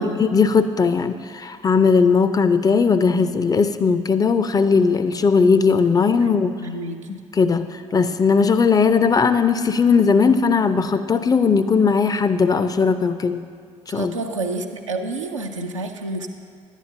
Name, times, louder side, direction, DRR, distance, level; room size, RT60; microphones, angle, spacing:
voice 1, 0.0-6.6 7.1-13.4 13.9-14.1, left 5 dB, 25° left, 11 dB, 0.4 m, -18 dB
voice 2, 6.6-7.0 13.9-16.3, right 2 dB, 85° right, 3 dB, 0.4 m, -29 dB
11.0 x 9.0 x 2.7 m, 2.2 s
figure-of-eight pair, 45°, 16 cm